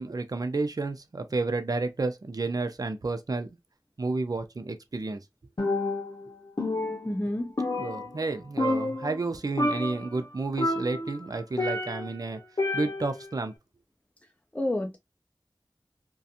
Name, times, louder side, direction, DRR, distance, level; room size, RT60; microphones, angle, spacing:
voice 1, 0.0-3.5 4.0-5.2 7.8-12.4 12.7-13.5, right 3 dB, 55° right, 0.4 m, -31 dB
Percussion, 5.6-6.3 6.6-8.3 8.6-9.3 9.6-10.1 10.6-12.2 12.6-13.2, left 2 dB, 60° left, 0.7 m, -29 dB
voice 2, 7.0-7.5 14.5-15.0, left 1 dB, 20° left, 0.5 m, -29 dB
2.4 x 2.3 x 2.6 m
wide cardioid pair, 40°, 7 cm